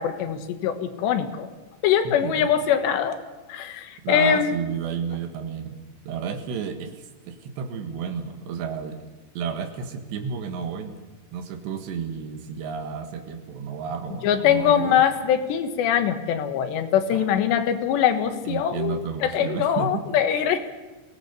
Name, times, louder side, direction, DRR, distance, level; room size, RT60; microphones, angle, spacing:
voice 1, 0.0-1.5 1.8-3.2 3.5-4.6 14.2-20.8, left 9 dB, 90° left, 8 dB, 3.6 m, -23 dB
voice 2, 2.1-2.5 4.0-5.8 6.1-9.0 9.4-10.9 11.3-15.0 17.1-17.3 18.4-20.0, right 6 dB, 85° right, 7 dB, 3.9 m, -32 dB
23.0 x 18.0 x 6.9 m, 1.2 s
omnidirectional pair, 4.8 m